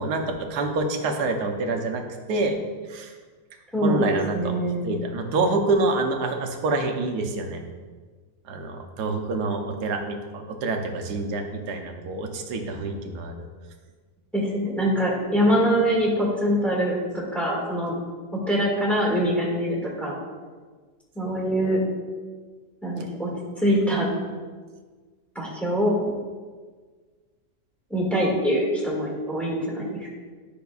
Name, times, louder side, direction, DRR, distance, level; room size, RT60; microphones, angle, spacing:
voice 1, 0.0-2.0 2.3-2.6 2.9-3.1 3.8-4.5 4.8-7.6 8.5-13.5, right 3 dB, 75° right, 4 dB, 1.3 m, -26 dB
voice 2, 3.7-4.0 4.3-4.9 14.3-18.0 18.5-20.2 21.2-21.8 22.8-23.3 23.6-24.1 25.4-26.0 27.9-30.1, equal, ahead, -4 dB, 1.7 m, -24 dB
10.5 x 5.8 x 2.3 m, 1.5 s
omnidirectional pair, 1.8 m